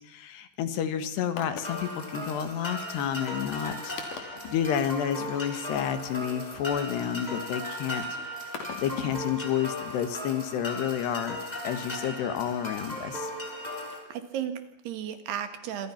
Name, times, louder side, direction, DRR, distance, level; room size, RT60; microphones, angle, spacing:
voice 1, 0.0-3.9 4.2-8.0 8.6-11.4 11.6-13.3, left 9 dB, 75° left, 10 dB, 3.7 m, -30 dB
sound 1, 1.2-1.8 2.3-2.4 3.0-3.1 3.5-3.6 3.9-4.5 5.7-7.4 7.8-9.2 9.6-9.7, left 6 dB, 50° left, 4.2 m, -41 dB
sound 2, 1.6-14.0, left 1 dB, 10° left, 5.4 m, -37 dB
voice 2, 13.8-15.9, right 9 dB, 70° right, 9 dB, 3.7 m, -35 dB
27.0 x 25.5 x 5.9 m, 0.80 s
omnidirectional pair, 4.9 m